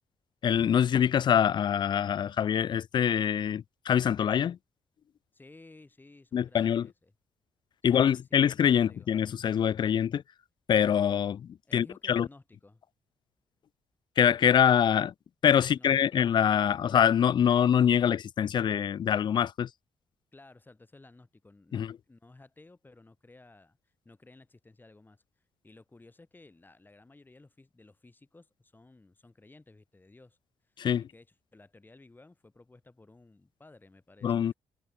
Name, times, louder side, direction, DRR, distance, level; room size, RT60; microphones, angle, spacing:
voice 1, 0.4-4.6 6.3-6.9 7.8-10.2 10.7-12.3 14.2-15.1 15.4-19.7 21.7-21.9 30.8-31.0 34.2-34.5, left 9 dB, 55° left, 0.5 m, -24 dB
voice 2, 5.3-7.1 7.9-9.1 11.7-12.8 15.6-16.2 20.3-25.2 25.6-30.4 30.6-34.5, left 2 dB, 20° left, 7.5 m, -56 dB
cardioid pair, 75°, 9 cm